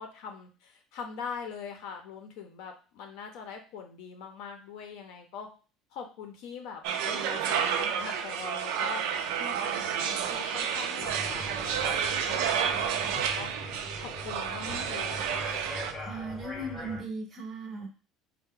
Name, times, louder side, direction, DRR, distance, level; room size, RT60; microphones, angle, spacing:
voice 1, 0.0-5.5 5.9-9.0 9.4-13.5 14.0-15.6, left 6 dB, 60° left, 4 dB, 0.6 m, -42 dB
sound 1, 6.8-15.9, right 8 dB, 70° right, 0.4 m, -30 dB
sound 2, 11.0-17.0, left 1 dB, 20° left, 0.8 m, -42 dB
voice 2, 16.0-17.9, right 2 dB, 20° right, 1 dB, 0.6 m, -37 dB
4.3 x 2.1 x 3.6 m, 0.35 s
cardioid pair, 175°, 0 cm